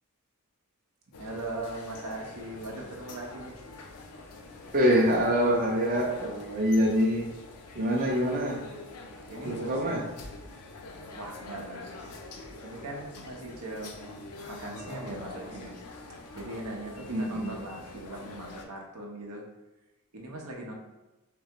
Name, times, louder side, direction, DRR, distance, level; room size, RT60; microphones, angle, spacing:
sound 1, 1.1-18.7, left 3 dB, 90° left, 0.5 m, -45 dB
voice 1, 1.2-3.6 9.3-10.1 11.1-12.1 12.6-14.2 14.5-15.8 16.3-19.4 20.1-20.7, right 2 dB, 80° right, 0 dB, 0.7 m, -40 dB
voice 2, 4.7-7.2 7.8-8.6 9.4-10.0 17.1-17.6, equal, 40° right, -2 dB, 0.5 m, -25 dB
3.7 x 3.3 x 2.9 m, 1.0 s
head